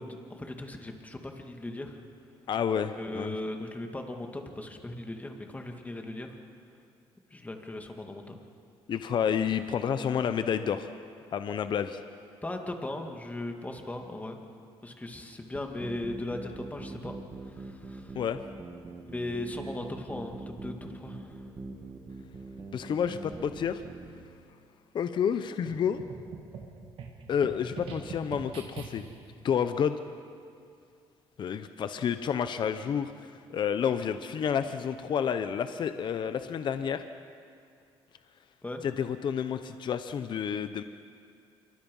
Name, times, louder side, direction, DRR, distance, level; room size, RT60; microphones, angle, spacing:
voice 1, 0.0-2.0 3.0-6.3 7.3-8.4 12.4-14.4 14.8-17.2 17.5-18.2 19.0-21.5 38.6-38.8, left 1 dB, 15° left, 3 dB, 2.4 m, -38 dB
voice 2, 2.5-3.3 8.9-10.9 11.3-12.0 18.1-18.4 22.7-23.8 24.9-26.0 27.3-29.0 29.4-30.0 31.4-37.0 38.8-40.8, left 8 dB, 50° left, 10 dB, 0.9 m, -30 dB
sound 1, 15.5-24.2, right 3 dB, 25° right, 2.5 m, -43 dB
sound 2, 25.7-29.3, right 5 dB, 70° right, 3.0 m, -43 dB
27.0 x 23.5 x 5.6 m, 2.3 s
cardioid pair, 105°, 10 cm